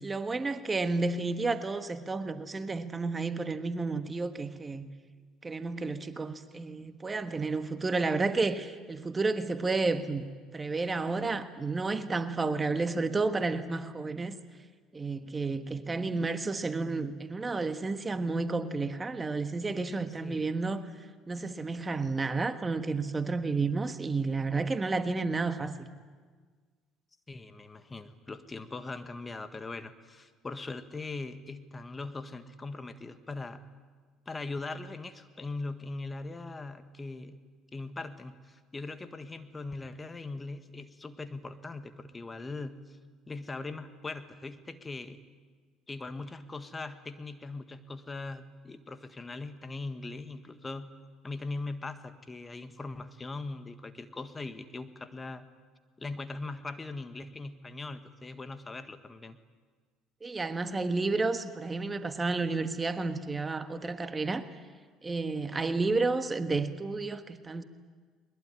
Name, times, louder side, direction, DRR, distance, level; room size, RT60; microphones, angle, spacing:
voice 1, 0.0-4.9 5.4-10.3 10.5-14.3 14.9-20.8 21.3-25.9 60.2-64.5 65.0-67.6, right 3 dB, 25° right, 10 dB, 1.4 m, -31 dB
voice 2, 20.2-20.5 27.3-33.6 34.3-37.4 37.7-42.8 43.3-45.2 45.9-50.9 51.2-55.5 56.0-59.4, left 3 dB, 25° left, 10 dB, 1.6 m, -40 dB
21.5 x 21.0 x 9.8 m, 1.5 s
hypercardioid pair, 70°, 0 cm